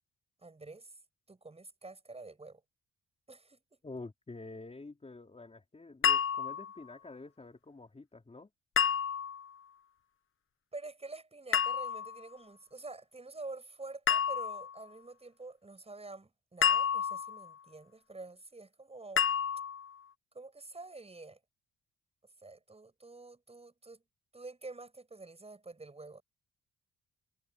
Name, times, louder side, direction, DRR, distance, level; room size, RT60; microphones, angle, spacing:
voice 1, 0.4-1.0 1.3-2.6 3.3-3.8 10.7-19.2 20.3-21.4 22.4-24.0 24.3-26.2, right 3 dB, 20° right, 7.8 m, -48 dB
voice 2, 3.8-8.5, left 3 dB, 20° left, 4.5 m, -48 dB
sound 1, 6.0-6.8 8.8-9.5 11.5-12.2 14.1-14.8 16.6-17.5 19.2-19.9, left 8 dB, 45° left, 0.9 m, -30 dB
cardioid pair, 90°, 30 cm